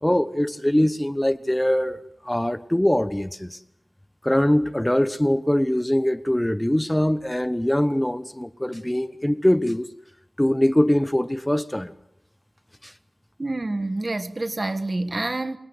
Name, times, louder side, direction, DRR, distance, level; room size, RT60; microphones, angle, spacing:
voice 1, 0.0-3.6 4.2-9.9 10.4-11.9 12.8-12.9, left 1 dB, 15° left, 1.0 m, -22 dB
voice 2, 13.4-15.6, right 2 dB, 55° right, 1.7 m, -27 dB
27.5 x 19.5 x 7.9 m
wide cardioid pair, 45°, 0 cm